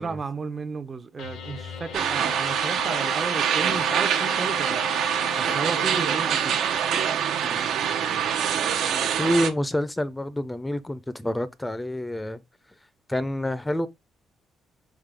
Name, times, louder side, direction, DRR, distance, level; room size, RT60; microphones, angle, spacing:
voice 1, 0.0-4.8 5.4-6.6, right 4 dB, 35° right, 0.5 m, -33 dB
sound 1, 1.2-7.0, left 6 dB, 80° left, 0.8 m, -38 dB
sound 2, 1.9-9.5, right 8 dB, 75° right, 0.7 m, -25 dB
voice 2, 9.2-12.4 13.1-13.9, left 1 dB, 10° left, 0.4 m, -27 dB
3.7 x 3.5 x 3.3 m
cardioid pair, 90°, 0 cm